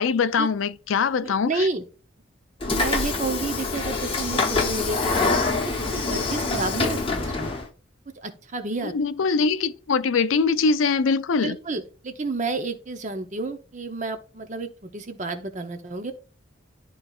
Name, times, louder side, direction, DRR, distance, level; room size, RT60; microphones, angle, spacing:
voice 1, 0.0-1.7 8.9-11.6, left 5 dB, 85° left, 0.5 m, -22 dB
voice 2, 1.2-1.8 2.7-7.5 8.2-8.9 11.4-16.1, right 3 dB, 35° right, 0.7 m, -30 dB
Train / Sliding door, 2.6-7.7, left 3 dB, 25° left, 0.8 m, -25 dB
11.5 x 3.9 x 2.4 m
head